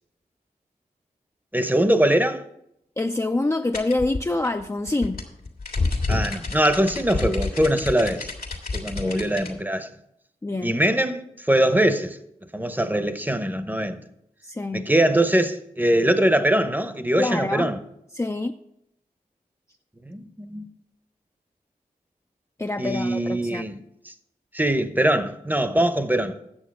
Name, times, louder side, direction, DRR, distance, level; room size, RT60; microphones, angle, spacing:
voice 1, 1.5-2.4 6.1-8.3 8.7-9.9 10.6-12.2 12.5-14.0 14.7-17.8 20.0-20.7 22.8-23.8 24.5-26.3, right 1 dB, 10° right, 0.8 m, -22 dB
voice 2, 3.0-5.2 8.9-9.3 10.4-10.8 14.5-14.9 17.2-17.7 18.1-18.5 22.6-23.6, left 2 dB, 20° left, 0.4 m, -26 dB
sound 1, 3.7-9.5, left 3 dB, 80° left, 1.8 m, -29 dB
8.9 x 6.9 x 5.3 m
cardioid pair, 45°, 16 cm